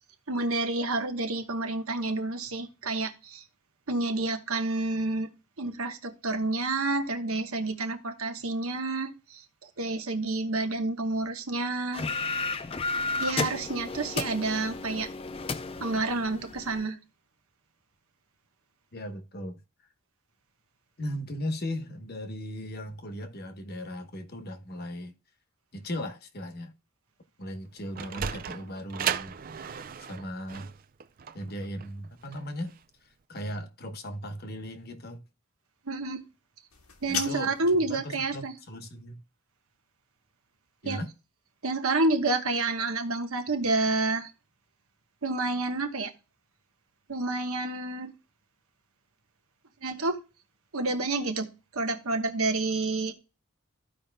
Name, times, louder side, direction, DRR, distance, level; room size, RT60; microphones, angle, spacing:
voice 1, 0.3-3.4 3.9-5.3 5.6-12.1 13.1-15.1 15.8-17.0 35.9-36.2 37.0-38.5 40.8-41.0 41.6-44.3 45.2-46.1 47.1-48.1 49.8-50.2 50.7-53.1, right 2 dB, 75° right, 1.1 m, -29 dB
sound 1, 11.9-16.9, left 3 dB, 25° left, 0.4 m, -33 dB
voice 2, 18.9-19.6 21.0-25.1 25.7-26.7 27.4-29.3 30.0-30.7 31.3-32.7 33.0-35.2 37.1-37.5 37.8-39.2 40.8-41.1 47.2-47.3, equal, 45° left, 1.0 m, -37 dB
Sliding door, 27.6-32.8, right 8 dB, 40° right, 0.4 m, -35 dB
sound 2, 36.7-37.7, left 7 dB, 85° left, 1.4 m, -35 dB
14.5 x 5.0 x 2.2 m
head